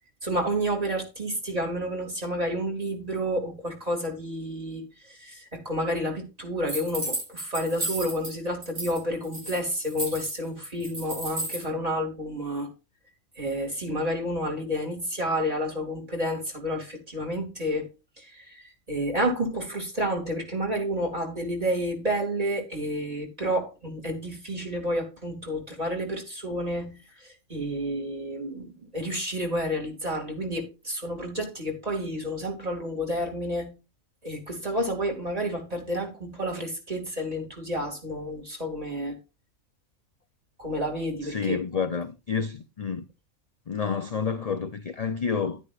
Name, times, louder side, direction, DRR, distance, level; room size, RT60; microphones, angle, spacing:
voice 1, 0.2-12.7 13.4-17.9 18.2-33.7 34.2-39.2 40.6-41.6, equal, 25° right, 2.7 m, -30 dB
sound 1, 6.7-8.3 8.6-9.0 9.2-11.6, right 1 dB, 80° right, 6.0 m, -33 dB
voice 2, 41.2-43.1 43.7-45.6, left 6 dB, 40° left, 0.5 m, -29 dB
11.0 x 9.9 x 2.5 m
omnidirectional pair, 1.5 m